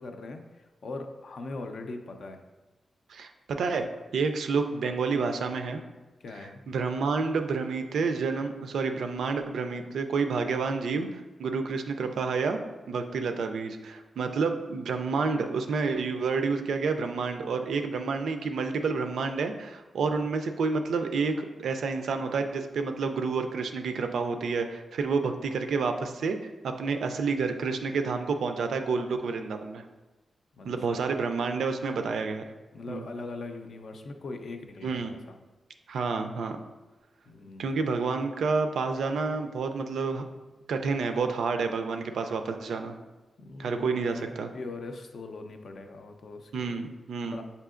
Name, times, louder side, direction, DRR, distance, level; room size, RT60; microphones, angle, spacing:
voice 1, 0.0-2.4 6.2-6.6 30.6-31.1 32.7-35.4 37.3-37.8 43.4-46.8 47.3-47.4, left 3 dB, 60° left, 5 dB, 0.4 m, -41 dB
voice 2, 3.1-3.9 4.1-5.8 6.7-11.1 11.4-12.6 12.9-26.4 26.6-29.8 30.6-32.4 32.9-33.1 34.8-35.1 35.9-36.6 37.6-40.2 40.7-42.9 43.6-44.5 46.5-47.4, right 4 dB, 90° right, 6 dB, 0.3 m, -29 dB
6.6 x 2.7 x 2.4 m, 1.2 s
wide cardioid pair, 115°, 0 cm